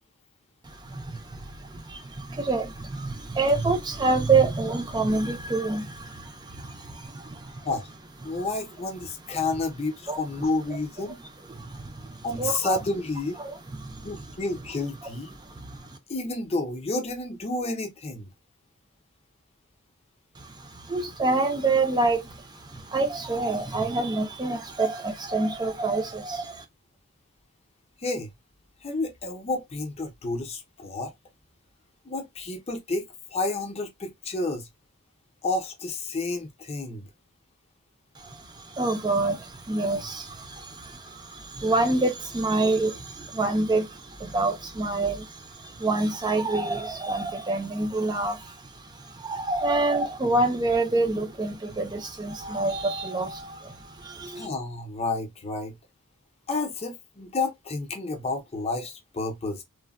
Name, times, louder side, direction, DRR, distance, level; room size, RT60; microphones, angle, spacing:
voice 1, 0.6-7.7 8.3-8.4 10.1-10.2 11.5-12.8 13.4-14.1 15.4-16.0 20.4-26.6 38.2-54.5, right 3 dB, 20° right, 0.4 m, -27 dB
voice 2, 8.2-11.2 12.2-13.4 14.0-15.3 16.1-18.3 28.0-28.3 28.8-31.1 32.1-34.7 35.4-37.1 54.2-55.8 56.5-59.6, left 3 dB, 30° left, 0.6 m, -30 dB
3.2 x 2.1 x 2.2 m
head